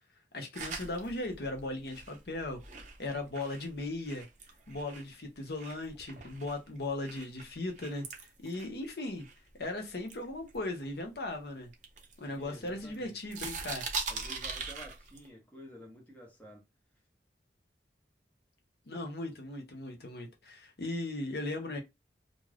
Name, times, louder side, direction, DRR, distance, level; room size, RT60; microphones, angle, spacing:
voice 1, 0.3-2.6 3.0-4.3 4.7-8.0 8.4-9.3 9.6-11.7 12.2-13.8 18.9-21.8, left 2 dB, 65° left, 0.7 m, -37 dB
sound 1, 0.6-5.1 5.5-9.7 10.1-11.3 11.7-13.0 13.2-15.3, right 4 dB, 40° right, 0.6 m, -42 dB
voice 2, 12.3-13.1 14.1-16.6, equal, 10° left, 0.7 m, -51 dB
2.5 x 2.4 x 3.2 m
head